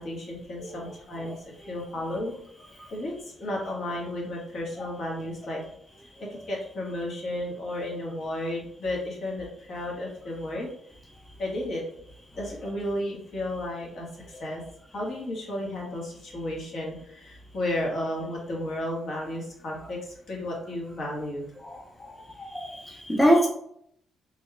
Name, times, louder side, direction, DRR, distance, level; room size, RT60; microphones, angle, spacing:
voice 1, 0.0-1.3 1.7-2.4 2.9-3.1 3.4-5.6 6.2-10.7 11.4-11.8 12.3-14.6 14.9-21.4, left 1 dB, 60° left, -2 dB, 1.4 m, -33 dB
voice 2, 22.4-23.5, equal, 15° left, -1 dB, 0.6 m, -24 dB
4.1 x 3.0 x 2.3 m, 0.70 s
cardioid pair, 90°, 0 cm